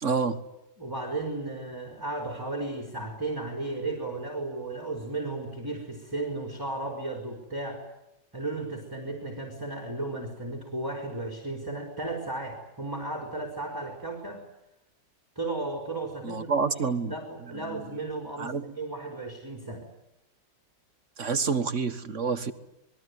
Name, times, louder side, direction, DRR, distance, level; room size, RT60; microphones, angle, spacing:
voice 1, 0.0-0.4 16.2-17.1 17.5-17.8 18.4-18.7 21.2-22.5, right 5 dB, 40° right, 10 dB, 1.8 m, -28 dB
voice 2, 0.8-7.8 8.3-14.4 15.4-19.9, right 2 dB, 10° right, 2 dB, 4.3 m, -34 dB
27.5 x 22.0 x 9.7 m, 0.89 s
omnidirectional pair, 2.0 m